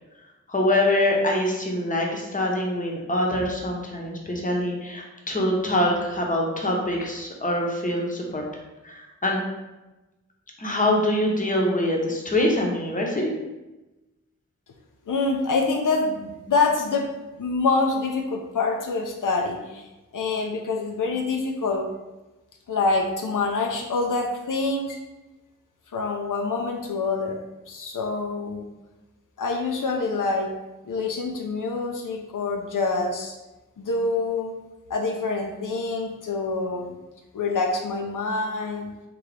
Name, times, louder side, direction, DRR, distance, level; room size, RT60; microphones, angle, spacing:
voice 1, 0.5-8.4 8.8-9.4 10.6-13.3, left 1 dB, 25° left, -1 dB, 0.7 m, -24 dB
voice 2, 15.1-17.1 17.4-19.9 20.1-21.9 22.7-25.0 25.9-27.4 27.7-28.6 29.4-30.5 30.8-33.3 33.8-34.5 34.9-37.0 37.3-38.9, left 3 dB, 85° left, 1 dB, 0.5 m, -26 dB
3.7 x 2.8 x 3.3 m, 1.1 s
wide cardioid pair, 75°, 31 cm